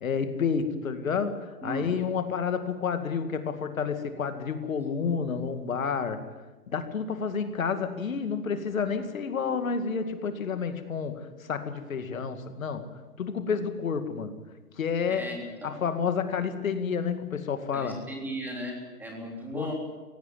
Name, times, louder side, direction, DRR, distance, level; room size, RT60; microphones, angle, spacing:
voice 1, 0.0-6.2 6.7-12.8 13.2-14.3 14.8-15.3 15.6-18.0 19.5-19.7, left 6 dB, 60° left, 9 dB, 2.3 m, -30 dB
voice 2, 15.1-15.8 17.7-19.7, right 1 dB, 5° right, -1 dB, 3.5 m, -37 dB
18.0 x 17.0 x 9.3 m, 1.2 s
figure-of-eight pair, 135°, 46 cm